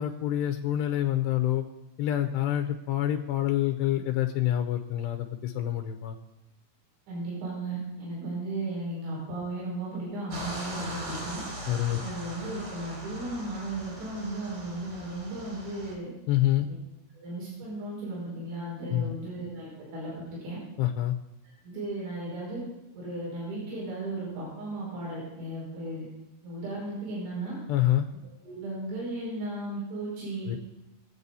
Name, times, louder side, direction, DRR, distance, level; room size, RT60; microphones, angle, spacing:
voice 1, 0.0-1.6 2.0-6.2 11.7-12.0 16.3-16.7 18.9-19.2 20.8-21.2 27.7-28.1 30.5-30.6, left 12 dB, 85° left, 5 dB, 2.4 m, -27 dB
voice 2, 7.1-11.4 12.0-16.1 17.1-20.6 21.4-22.6 22.9-26.0 26.4-27.6 28.4-30.6, right 2 dB, 65° right, -6 dB, 7.7 m, -35 dB
sound 1, 10.3-15.9, right 1 dB, 45° right, 4.1 m, -40 dB
24.0 x 8.1 x 4.1 m, 0.96 s
omnidirectional pair, 5.8 m